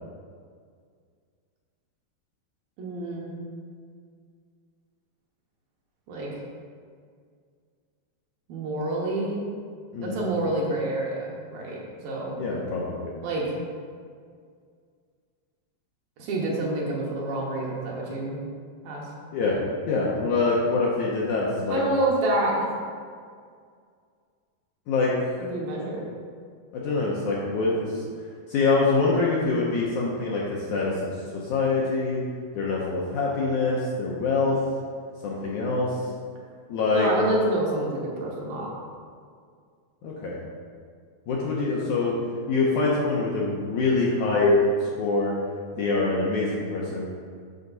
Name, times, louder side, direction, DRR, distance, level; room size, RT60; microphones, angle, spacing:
voice 1, 2.8-3.3 6.1-6.3 8.5-9.4 10.0-11.8 12.0-12.4 13.2-13.4 16.2-18.4 18.8-19.0 19.4-19.6 21.7-22.8 25.4-26.1 36.9-38.7, right 2 dB, 70° right, -3 dB, 2.7 m, -27 dB
voice 2, 12.4-13.1 19.3-19.6 19.9-21.8 24.9-25.4 26.7-28.0 28.5-31.0 31.3-32.2 32.6-34.6 35.2-36.0 36.7-37.1 40.0-40.3 41.3-42.2 42.5-45.3 45.7-47.1, left 3 dB, 75° left, -4 dB, 1.9 m, -24 dB
8.0 x 6.4 x 4.0 m, 2.1 s
omnidirectional pair, 4.4 m